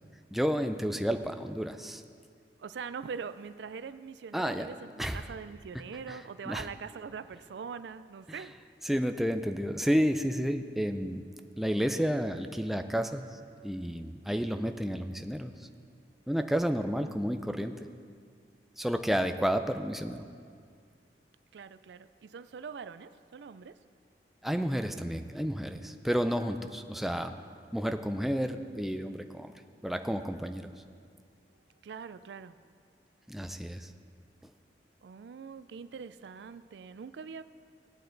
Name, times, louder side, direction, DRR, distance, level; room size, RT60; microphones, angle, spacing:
voice 1, 0.3-2.0 4.3-4.7 5.0-5.3 6.1-6.2 6.5-6.7 8.3-8.4 8.8-11.2 11.6-15.7 16.3-17.7 18.8-20.2 24.4-27.3 27.7-29.5 29.8-30.7 33.3-33.9, equal, ahead, 7 dB, 0.4 m, -31 dB
voice 2, 2.6-8.5 21.5-23.8 31.8-32.5 35.0-37.4, right 6 dB, 75° right, 14 dB, 0.4 m, -43 dB
17.0 x 8.7 x 3.9 m, 2.2 s
head